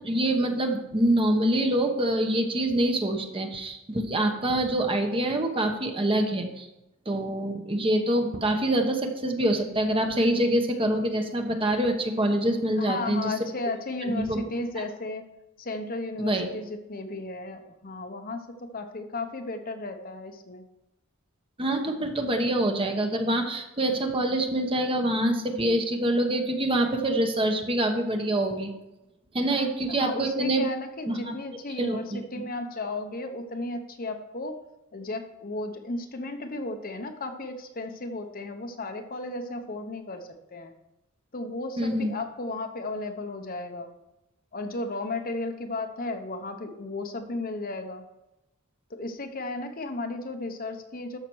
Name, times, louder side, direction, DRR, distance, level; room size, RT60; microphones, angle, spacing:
voice 1, 0.0-6.7 7.1-13.3 14.1-14.4 14.8-14.9 16.2-16.5 21.6-28.7 29.3-30.7 31.1-31.4 31.8-32.5 41.8-42.1, right 1 dB, 25° right, 4 dB, 1.1 m, -25 dB
voice 2, 12.8-15.2 15.6-20.7 29.5-29.7 30.0-34.6 34.9-40.7 41.3-43.9 44.5-48.1 48.9-51.2, left 2 dB, 45° left, 6 dB, 0.9 m, -34 dB
13.0 x 5.8 x 4.7 m, 0.93 s
head